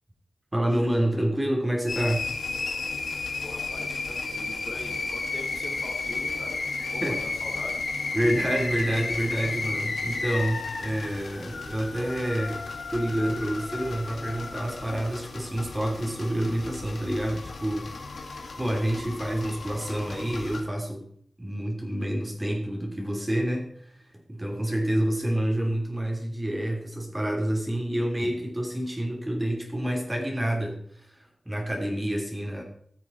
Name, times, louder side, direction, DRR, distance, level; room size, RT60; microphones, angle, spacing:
voice 1, 0.5-2.3 7.0-7.2 8.1-12.6 12.9-18.2 18.6-21.0 21.4-23.7 24.3-31.1 31.4-32.6, right 1 dB, 20° right, 1 dB, 2.9 m, -28 dB
sound 1, 1.9-20.6, left 3 dB, 75° left, 1.8 m, -33 dB
voice 2, 3.4-6.6 6.9-7.8, left 1 dB, 45° left, 1 dB, 3.2 m, -42 dB
14.0 x 7.1 x 4.3 m, 0.62 s
cardioid pair, 50°, 0 cm